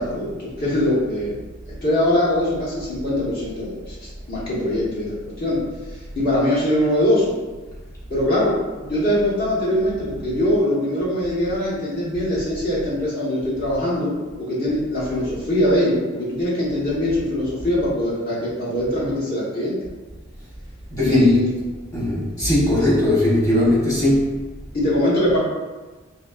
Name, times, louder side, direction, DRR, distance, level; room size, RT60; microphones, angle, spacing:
voice 1, 0.0-1.3 1.8-5.6 6.1-7.3 8.1-19.8 21.0-21.5 24.7-25.4, left 1 dB, 45° left, -8 dB, 1.2 m, -22 dB
voice 2, 20.9-21.4 21.9-24.4, left 1 dB, 15° left, -8 dB, 1.2 m, -19 dB
4.1 x 2.8 x 2.4 m, 1.2 s
head